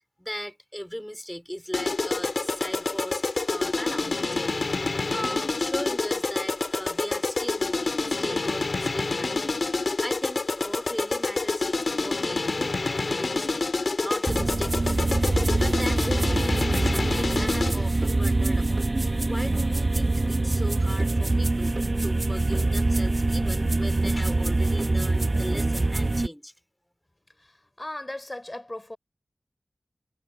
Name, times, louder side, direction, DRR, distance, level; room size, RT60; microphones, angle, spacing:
voice 1, 0.2-15.1 15.6-26.5, equal, 5° left, 2.7 m, -38 dB
sound 1, 1.7-17.9, left 3 dB, 55° left, 2.8 m, -28 dB
sound 2, 14.3-26.3, right 2 dB, 35° right, 1.0 m, -24 dB
voice 2, 27.4-29.0, left 1 dB, 25° left, 3.5 m, -37 dB
wide cardioid pair, 80°, 0 cm